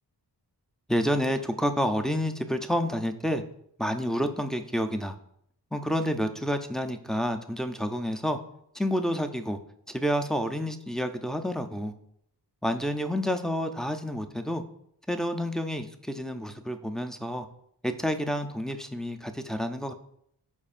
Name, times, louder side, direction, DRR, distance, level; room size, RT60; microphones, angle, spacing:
voice 1, 0.9-3.4 3.8-5.1 5.7-8.4 8.7-9.6 9.9-11.9 12.6-14.6 15.1-17.5 17.8-19.9, equal, ahead, 6 dB, 0.3 m, -29 dB
12.5 x 4.2 x 2.5 m, 0.71 s
wide cardioid pair, 145°, 40 cm